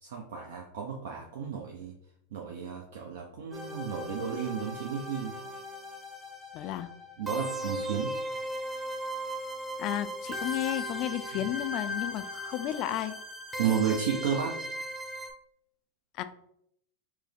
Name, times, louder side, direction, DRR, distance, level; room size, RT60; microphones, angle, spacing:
voice 1, 0.0-1.9 2.3-5.3 7.2-8.1 13.6-14.6, right 7 dB, 65° right, 0 dB, 0.5 m, -32 dB
sound 1, 3.5-15.3, equal, 15° right, 0.8 m, -37 dB
voice 2, 6.5-6.9 9.8-13.2 16.1-16.2, left 13 dB, 45° left, 11 dB, 0.3 m, -33 dB
4.5 x 2.0 x 3.4 m, 0.73 s
hypercardioid pair, 95°, 0 cm